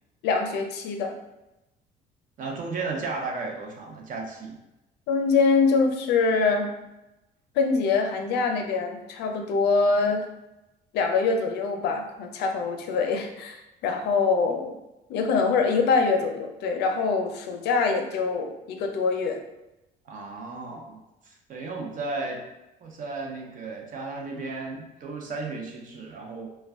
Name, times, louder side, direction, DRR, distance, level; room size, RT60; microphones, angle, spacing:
voice 1, 0.2-1.1 5.1-6.7 7.6-10.2 10.9-14.7 15.1-19.4, left 4 dB, 80° left, 4 dB, 0.5 m, -24 dB
voice 2, 2.4-4.6 20.1-22.4 22.8-26.5, right 3 dB, 50° right, 1 dB, 0.6 m, -34 dB
2.3 x 2.2 x 3.4 m, 0.95 s
cardioid pair, 110°, 17 cm